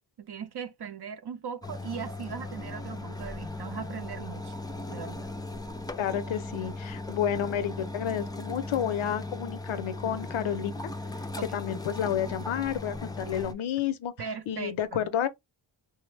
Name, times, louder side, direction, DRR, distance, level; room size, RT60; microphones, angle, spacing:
voice 1, 0.2-4.5 4.9-5.3 11.3-11.5 14.2-15.1, right 7 dB, 55° right, 0.6 m, -39 dB
sound 1, 1.6-13.5, left 2 dB, 10° left, 0.3 m, -38 dB
voice 2, 6.0-10.7 11.5-15.3, left 9 dB, 85° left, 0.6 m, -30 dB
3.3 x 2.0 x 3.1 m
wide cardioid pair, 75°, 46 cm